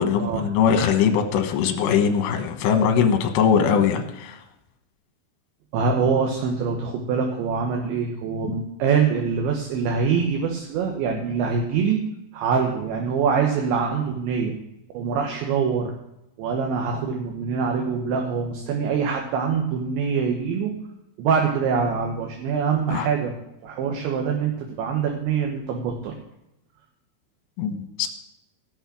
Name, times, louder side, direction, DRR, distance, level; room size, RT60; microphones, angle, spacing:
voice 1, 0.0-4.4 8.4-8.6 22.9-23.1 27.6-28.1, left 7 dB, 70° left, 5 dB, 3.1 m, -21 dB
voice 2, 5.7-12.0 12.3-14.5 14.9-15.9 16.4-20.7 21.2-23.3 23.6-26.1, right 6 dB, 70° right, 1 dB, 3.3 m, -24 dB
16.5 x 6.4 x 6.2 m, 0.87 s
omnidirectional pair, 5.8 m